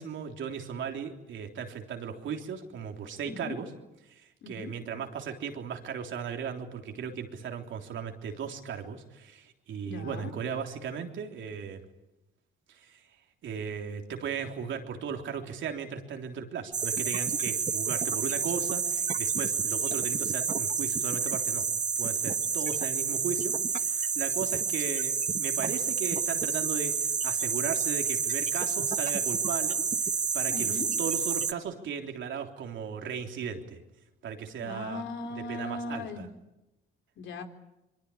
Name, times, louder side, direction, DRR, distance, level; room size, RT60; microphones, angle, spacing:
voice 1, 0.0-3.7 4.0-11.8 12.7-13.0 13.4-21.7 22.0-33.8 34.2-35.0 35.4-36.3, right 7 dB, 75° right, 4 dB, 3.5 m, -37 dB
voice 2, 3.3-3.6 4.4-4.7 9.8-10.3 30.5-30.9 34.6-36.3 37.2-37.4, left 3 dB, 75° left, 5 dB, 3.8 m, -38 dB
sound 1, 16.7-31.5, right 6 dB, 40° right, 1.2 m, -29 dB
26.5 x 23.5 x 8.7 m, 0.95 s
cardioid pair, 90°, 20 cm